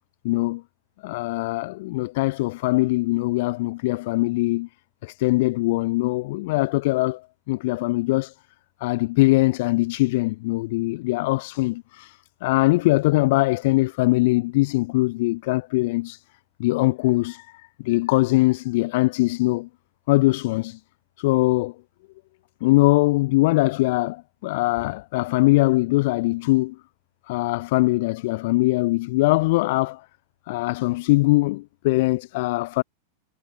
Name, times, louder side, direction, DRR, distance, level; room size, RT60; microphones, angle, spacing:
voice 1, 0.2-0.6 1.0-4.7 5.0-8.3 8.8-16.2 16.6-17.5 17.8-19.7 20.1-20.8 21.2-21.7 22.6-26.8 27.3-30.0 30.5-32.8, left 21 dB, 50° left, 0.4 m, -22 dB
figure-of-eight pair, 90°, 0 cm